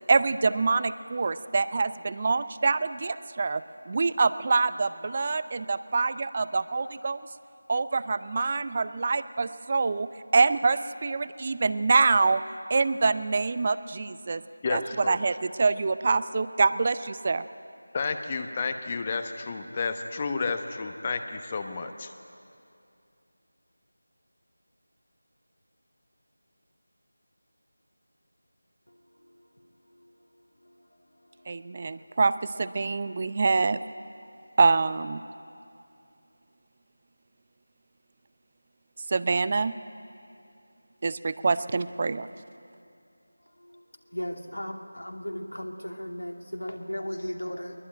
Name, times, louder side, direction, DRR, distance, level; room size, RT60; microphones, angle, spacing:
voice 1, 0.1-7.2 7.7-10.1 10.3-12.4 12.7-14.4 14.7-17.4 31.5-33.8 34.6-35.2 39.1-39.8 41.0-42.3, right 4 dB, 30° right, 15 dB, 0.6 m, -25 dB
voice 2, 14.6-15.2 17.9-22.1, left 4 dB, 25° left, 8 dB, 1.0 m, -31 dB
voice 3, 44.1-47.7, equal, 85° left, 3 dB, 2.5 m, -35 dB
22.5 x 20.5 x 9.1 m, 2.6 s
figure-of-eight pair, 165°, 0 cm